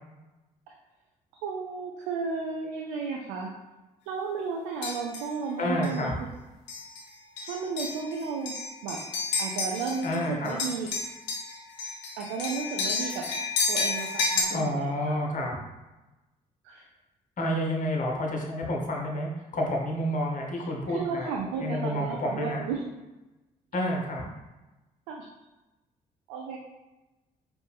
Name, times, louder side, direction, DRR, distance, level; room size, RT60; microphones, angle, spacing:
voice 1, 1.4-3.5 4.1-6.1 7.4-8.6 8.8-9.0 9.4-10.9 12.2-13.3 13.7-15.2 16.6-16.8 20.6-20.7 20.9-22.8 25.1-25.2 26.3-26.6, right 5 dB, 70° right, 0 dB, 0.5 m, -33 dB
sound 1, 4.8-5.3 5.8-6.0 6.7-7.0 7.4-10.2 10.5-14.4, left 4 dB, 65° left, 0.8 m, -31 dB
voice 2, 5.6-6.1 10.0-10.6 14.5-15.6 17.4-21.3 21.6-22.6 23.7-24.2, left 1 dB, 40° left, 0 dB, 1.0 m, -29 dB
4.4 x 2.5 x 3.5 m, 1.1 s
figure-of-eight pair, 45°, 20 cm